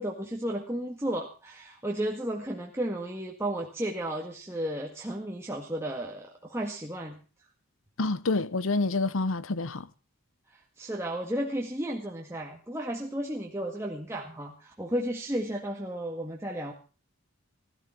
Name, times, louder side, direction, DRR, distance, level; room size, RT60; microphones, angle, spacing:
voice 1, 0.0-7.2 10.5-16.7, right 1 dB, 10° right, 1.8 m, -33 dB
voice 2, 8.0-9.9, left 3 dB, 65° left, 0.9 m, -28 dB
16.0 x 14.0 x 4.5 m
head